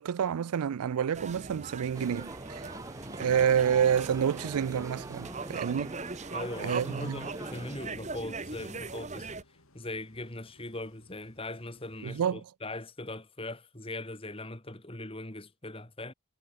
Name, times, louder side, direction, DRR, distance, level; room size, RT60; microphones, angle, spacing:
voice 1, 0.0-2.7 3.2-6.0 6.6-7.2 12.0-12.4, right 8 dB, 90° right, 0.4 m, -28 dB
sound 1, 1.0-12.3, left 2 dB, 70° left, 5.8 m, -64 dB
sound 2, 1.1-9.4, right 3 dB, 30° right, 1.4 m, -40 dB
sound 3, 1.9-7.8, right 2 dB, 15° right, 0.8 m, -44 dB
voice 2, 6.3-9.3 9.7-16.1, left 2 dB, 25° left, 2.2 m, -40 dB
head